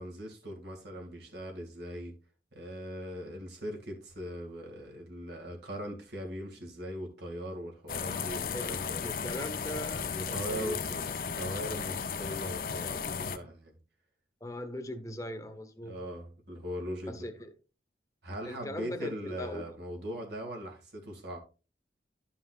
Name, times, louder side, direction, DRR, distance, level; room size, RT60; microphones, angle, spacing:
voice 1, 0.0-2.1 2.5-9.2 10.1-13.8 15.8-17.3 18.2-21.4, equal, 75° right, 2.2 m, -40 dB
sound 1, 7.9-13.4, left 6 dB, 50° left, 0.5 m, -35 dB
voice 2, 8.0-11.1 14.4-16.0 17.1-17.5 18.4-19.7, left 1 dB, 20° left, 0.8 m, -41 dB
12.0 x 5.5 x 2.4 m
head